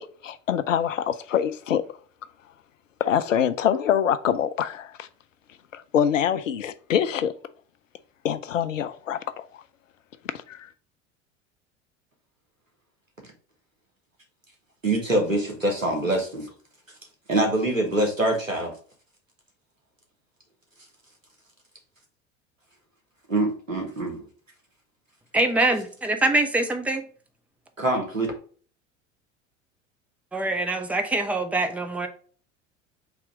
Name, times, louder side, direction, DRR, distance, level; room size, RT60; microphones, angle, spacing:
voice 1, 0.0-1.8 3.0-5.1 5.7-7.3 8.2-9.5 10.5-10.7, left 9 dB, 80° left, 0.5 m, -25 dB
voice 2, 14.8-16.5 17.3-18.7 23.3-24.2 27.8-28.3, right 1 dB, 90° right, 1.2 m, -24 dB
voice 3, 25.3-27.0 30.3-32.1, right 2 dB, 5° right, 0.5 m, -24 dB
3.9 x 2.9 x 4.6 m
figure-of-eight pair, 75°, 38 cm